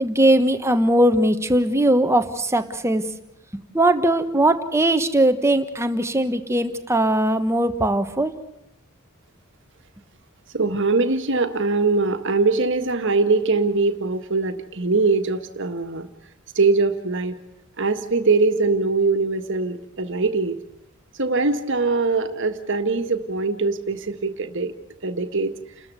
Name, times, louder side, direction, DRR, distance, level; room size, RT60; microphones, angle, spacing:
voice 1, 0.0-3.0 3.5-8.3, right 1 dB, 10° right, 8 dB, 1.3 m, -20 dB
voice 2, 10.5-16.1 16.6-17.4 17.8-20.6 21.2-24.7 25.0-25.5, right 3 dB, 60° right, 7 dB, 1.7 m, -22 dB
29.5 x 13.5 x 8.1 m, 0.79 s
head